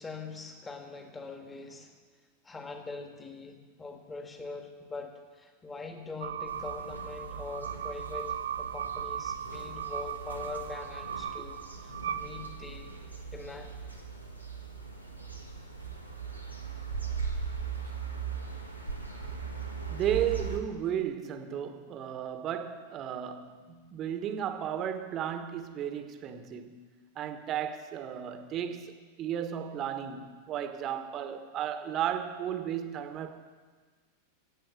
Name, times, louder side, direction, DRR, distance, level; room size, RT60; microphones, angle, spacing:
voice 1, 0.0-1.9 2.4-12.9 13.3-13.8, left 3 dB, 15° left, 1.8 m, -43 dB
sound 1, 6.2-13.0, right 9 dB, 60° right, 0.6 m, -38 dB
sound 2, 6.5-20.6, right 6 dB, 90° left, 1.6 m, -40 dB
voice 2, 19.9-26.8 27.1-33.5, right 9 dB, 30° right, 1.3 m, -34 dB
15.5 x 8.5 x 8.3 m
figure-of-eight pair, 90°, 0 cm